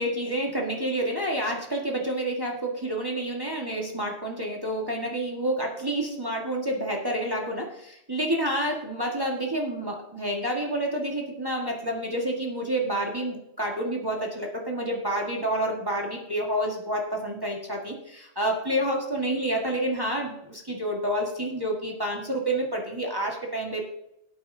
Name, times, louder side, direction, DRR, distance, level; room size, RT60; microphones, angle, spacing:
voice 1, 0.0-23.8, right 1 dB, 20° right, -1 dB, 1.7 m, -29 dB
18.0 x 9.2 x 2.7 m, 0.84 s
omnidirectional pair, 1.2 m